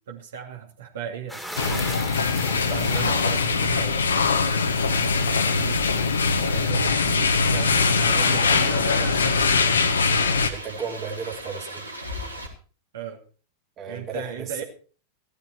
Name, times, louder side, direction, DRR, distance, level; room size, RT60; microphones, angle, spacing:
voice 1, 0.0-2.1 2.5-4.4 5.4-5.8 6.4-9.7 12.9-13.2 13.9-14.6, right 7 dB, 60° right, 2 dB, 2.6 m, -36 dB
sound 1, 1.3-6.7, equal, ahead, 2.3 m, -39 dB
sound 2, 1.6-10.5, left 4 dB, 70° left, 1.6 m, -22 dB
sound 3, 6.8-12.5, right 1 dB, 85° right, 3.1 m, -38 dB
voice 2, 10.5-11.8 13.8-14.6, right 6 dB, 30° right, 2 dB, 2.6 m, -34 dB
16.0 x 12.0 x 4.5 m, 0.40 s
figure-of-eight pair, 90°, 0 cm